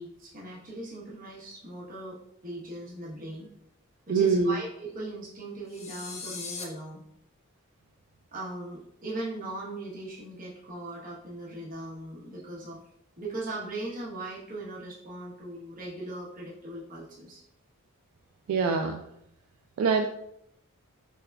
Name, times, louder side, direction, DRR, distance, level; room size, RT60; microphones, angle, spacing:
voice 1, 0.0-3.5 4.1-7.0 8.3-12.8 13.2-17.4, right 2 dB, 40° right, -5 dB, 0.9 m, -39 dB
voice 2, 4.1-4.6 18.5-19.0 19.8-20.1, right 5 dB, 70° right, 3 dB, 0.3 m, -24 dB
sound 1, 5.7-6.6, left 5 dB, 30° left, 0.4 m, -39 dB
3.5 x 2.2 x 3.4 m, 0.75 s
head